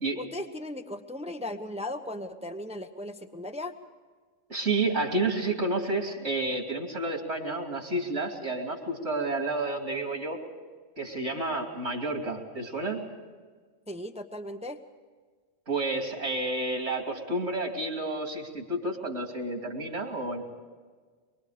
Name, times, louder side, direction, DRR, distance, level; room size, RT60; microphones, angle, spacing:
voice 1, 0.2-3.7 13.9-14.8, left 1 dB, 5° right, 6 dB, 0.9 m, -37 dB
voice 2, 4.5-10.4 11.0-13.0 15.7-20.4, right 2 dB, 70° right, 2 dB, 3.3 m, -30 dB
24.0 x 23.5 x 5.1 m, 1.5 s
omnidirectional pair, 1.3 m